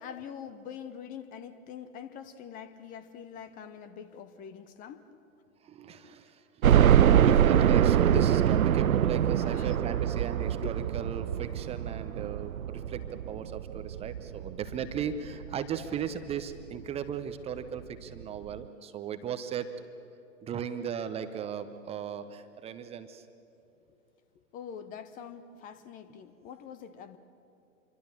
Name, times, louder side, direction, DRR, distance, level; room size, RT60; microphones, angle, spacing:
voice 1, 0.0-5.0 6.0-6.2 7.3-7.4 8.1-8.3 9.4-9.8 10.6-10.7 24.5-27.2, left 8 dB, 20° left, 13 dB, 0.7 m, -43 dB
voice 2, 5.6-6.4 7.0-19.7 20.4-23.2, right 8 dB, 15° right, 10 dB, 0.8 m, -36 dB
sound 1, 6.6-15.5 16.0-16.1 16.5-16.6 17.8-17.9 18.2-18.3, right 10 dB, 80° right, 0.5 m, -24 dB
27.0 x 24.0 x 7.3 m, 2.7 s
figure-of-eight pair, 115°, 41 cm